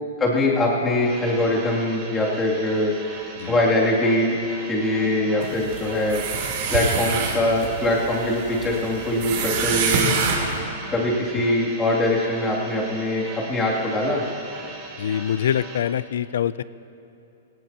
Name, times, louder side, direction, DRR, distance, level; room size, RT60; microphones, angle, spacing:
voice 1, 0.2-3.0 3.5-4.4 4.7-6.2 6.7-10.1 10.9-14.2, left 1 dB, 15° left, -4 dB, 2.7 m, -22 dB
sound 1, 1.0-15.8, right 4 dB, 30° right, 3.9 m, -40 dB
sound 2, 5.4-10.6, right 5 dB, 50° right, 2.8 m, -26 dB
voice 2, 15.0-16.6, left 9 dB, 75° left, 18 dB, 0.4 m, -25 dB
18.5 x 17.5 x 3.0 m, 2.9 s
hypercardioid pair, 145°, 0 cm